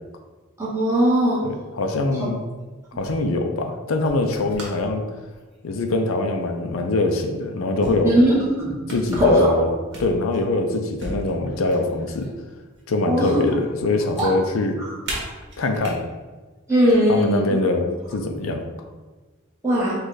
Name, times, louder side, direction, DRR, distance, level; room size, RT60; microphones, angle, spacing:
voice 1, 0.6-1.4 8.0-8.7 9.2-9.6 13.1-13.4 14.2-14.3 16.7-17.6 19.6-19.9, equal, 15° right, -7 dB, 1.4 m, -19 dB
voice 2, 1.4-2.4 2.9-5.0 5.6-8.2 8.9-9.7 10.0-12.3 12.9-14.8 15.6-16.0 17.1-18.6, left 2 dB, 75° left, 5 dB, 0.5 m, -23 dB
sound 1, 2.5-2.6 2.9-3.2 4.0-4.9 5.3-5.6 6.7-6.8 7.8-8.5 8.9-9.4 9.9-10.5 11.0-12.3 12.7-13.5 13.8-14.3 15.0-15.9 16.7-16.9 18.0-18.5, right 1 dB, 60° right, 1.2 m, -35 dB
5.0 x 2.4 x 4.0 m, 1.3 s
head